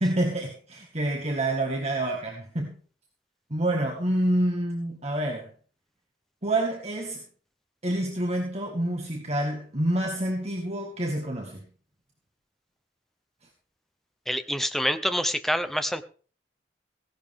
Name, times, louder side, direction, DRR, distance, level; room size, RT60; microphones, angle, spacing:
voice 1, 0.0-2.7 3.5-5.5 6.4-7.2 7.8-11.7, right 1 dB, 35° right, 0 dB, 2.0 m, -27 dB
voice 2, 14.3-16.0, equal, ahead, 10 dB, 0.8 m, -26 dB
16.5 x 11.5 x 3.7 m, 0.39 s
head